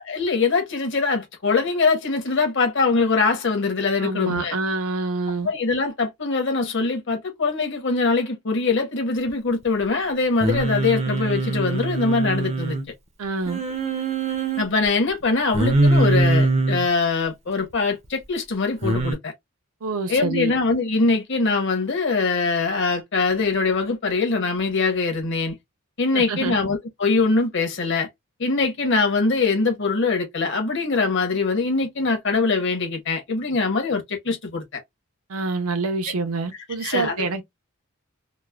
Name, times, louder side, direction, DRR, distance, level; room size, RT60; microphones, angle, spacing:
voice 1, 0.1-4.6 5.4-12.8 14.6-19.3 20.1-25.5 26.0-28.1 28.4-34.8 36.8-37.2, left 4 dB, 55° left, 1.0 m, -23 dB
voice 2, 4.0-5.5 13.2-13.6 19.8-20.5 26.1-26.6 35.3-37.4, right 3 dB, 80° right, 0.6 m, -26 dB
Singing, 10.4-12.8 13.5-14.6 15.5-16.9 18.8-19.1, right 2 dB, 30° right, 0.5 m, -22 dB
3.0 x 2.1 x 2.3 m
head